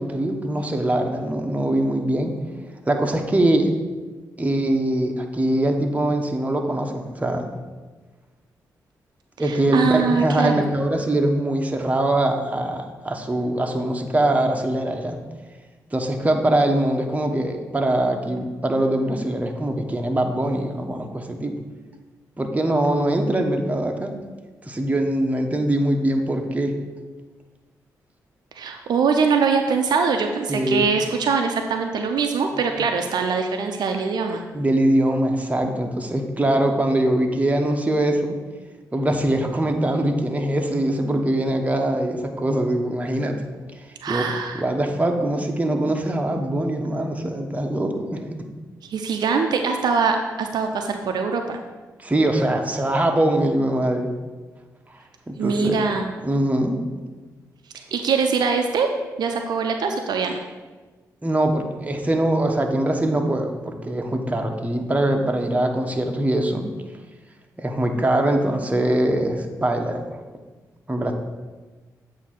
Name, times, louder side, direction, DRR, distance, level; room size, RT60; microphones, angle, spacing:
voice 1, 0.0-2.3 2.9-3.7 4.4-7.5 9.4-15.2 15.9-21.6 22.4-24.1 24.7-26.7 30.5-30.9 34.5-38.4 38.9-43.4 44.1-44.3 44.6-48.2 52.0-54.1 55.3-55.8 56.2-56.8 61.2-66.7 67.6-70.0 70.9-71.1, right 1 dB, 20° right, 3 dB, 1.0 m, -22 dB
voice 2, 9.4-10.7 28.5-34.4 44.0-44.6 48.9-51.6 55.4-56.1 57.9-58.9 59.2-60.4, right 5 dB, 70° right, 4 dB, 0.5 m, -23 dB
8.2 x 2.8 x 5.8 m, 1.3 s
supercardioid pair, 50°, 7 cm